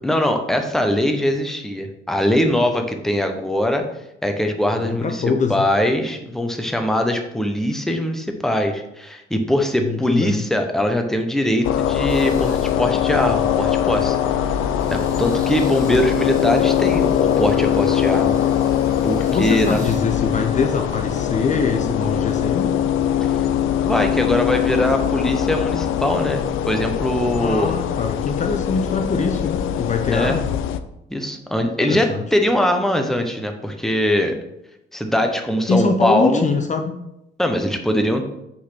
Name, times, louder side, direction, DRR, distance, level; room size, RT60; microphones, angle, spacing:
voice 1, 0.0-3.8 4.2-5.2 5.5-14.2 14.9-18.4 19.0-19.8 23.8-27.7 30.1-30.4 31.1-34.4 34.9-36.5 37.4-38.2, left 1 dB, ahead, 5 dB, 0.9 m, -21 dB
voice 2, 4.7-5.6 9.8-10.4 19.3-22.8 27.4-30.5 31.8-32.2 35.7-36.9, left 4 dB, 35° left, 4 dB, 0.7 m, -23 dB
sound 1, 11.6-30.8, left 10 dB, 85° left, 0.5 m, -21 dB
sound 2, 12.1-21.2, equal, 15° right, 2.2 m, -40 dB
5.8 x 4.0 x 5.9 m, 0.85 s
cardioid pair, 90°, 20 cm